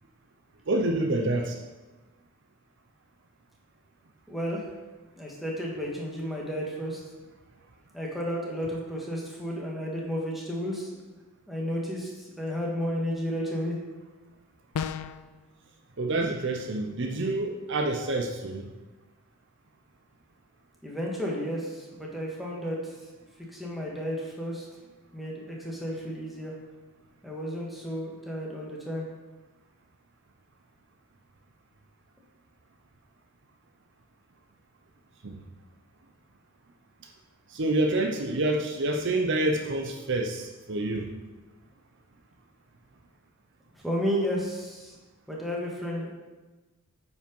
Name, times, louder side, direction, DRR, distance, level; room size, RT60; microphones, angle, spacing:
voice 1, 0.7-1.6 16.0-18.7 35.2-35.4 37.5-41.1, right 2 dB, 55° right, 4 dB, 0.7 m, -27 dB
voice 2, 4.3-4.6 5.2-7.0 7.9-10.9 11.5-13.8 20.8-22.9 23.5-24.6 25.1-26.5 27.2-29.0 43.7-44.9 45.3-46.1, equal, ahead, -3 dB, 1.6 m, -32 dB
sound 1, 14.7-15.3, left 7 dB, 85° left, 0.4 m, -32 dB
9.1 x 5.4 x 5.3 m, 1.2 s
head